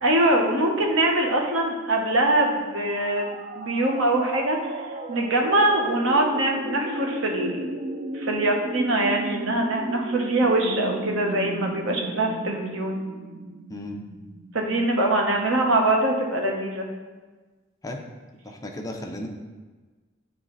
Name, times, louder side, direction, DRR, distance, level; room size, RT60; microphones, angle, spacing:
voice 1, 0.0-3.3 3.5-4.7 5.1-7.6 8.1-13.0 14.5-16.9, right 1 dB, 80° right, 1 dB, 1.0 m, -23 dB
sound 1, 2.7-14.5, right 2 dB, 45° right, 0.4 m, -34 dB
voice 2, 13.7-14.0 17.8-18.0 18.4-19.3, left 1 dB, 20° left, 2 dB, 0.6 m, -34 dB
8.7 x 3.1 x 3.9 m, 1.3 s
head